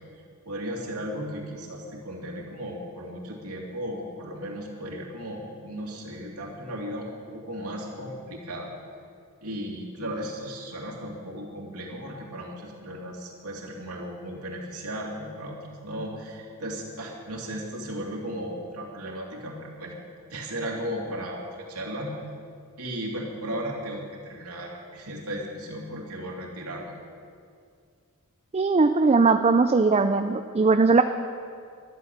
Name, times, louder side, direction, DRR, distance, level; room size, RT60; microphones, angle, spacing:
voice 1, 0.4-8.7 9.4-20.0 20.3-21.4 21.7-22.1 22.8-26.9, equal, 90° right, -2 dB, 2.8 m, -35 dB
voice 2, 28.5-31.0, right 4 dB, 30° right, 8 dB, 0.4 m, -20 dB
12.5 x 11.5 x 7.2 m, 2.2 s
head